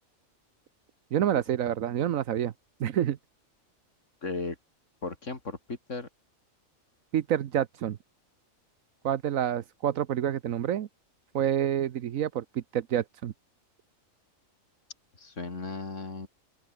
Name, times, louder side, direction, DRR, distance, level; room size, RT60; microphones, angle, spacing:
voice 1, 1.1-2.5 2.8-3.2 7.1-8.0 9.0-10.9 11.3-13.3, right 10 dB, 75° right, 1.2 m, -28 dB
voice 2, 4.2-4.6 5.0-6.1 15.2-16.3, left 3 dB, 60° left, 3.3 m, -36 dB
open air
omnidirectional pair, 1.4 m